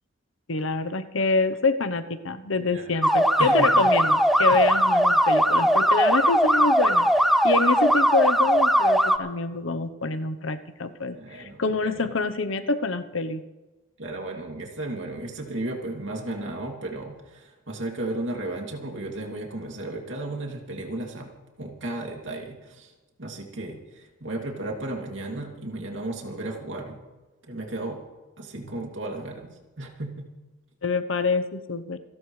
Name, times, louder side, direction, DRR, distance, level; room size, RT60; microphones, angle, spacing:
voice 1, 0.5-7.1 7.4-13.4 30.8-32.0, left 3 dB, 80° left, 10 dB, 0.9 m, -26 dB
voice 2, 2.7-3.0 3.4-3.9 4.5-4.6 11.1-12.1 14.0-21.3 21.6-22.9 23.2-27.0 27.5-28.0 28.4-30.3, right 2 dB, 70° right, 1 dB, 2.7 m, -34 dB
sound 1, 3.0-9.2, equal, ahead, 0.5 m, -20 dB
28.0 x 12.0 x 3.3 m, 1.2 s
head